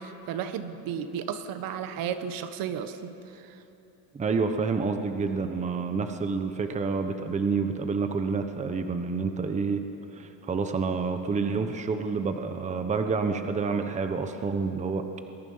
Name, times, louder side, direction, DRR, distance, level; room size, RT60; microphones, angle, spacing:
voice 1, 0.0-3.6, right 8 dB, 50° right, 10 dB, 1.4 m, -34 dB
voice 2, 4.1-9.8 10.1-15.0, right 4 dB, 15° right, 7 dB, 1.0 m, -28 dB
29.0 x 21.5 x 5.6 m, 3.0 s
cardioid pair, 145°, 43 cm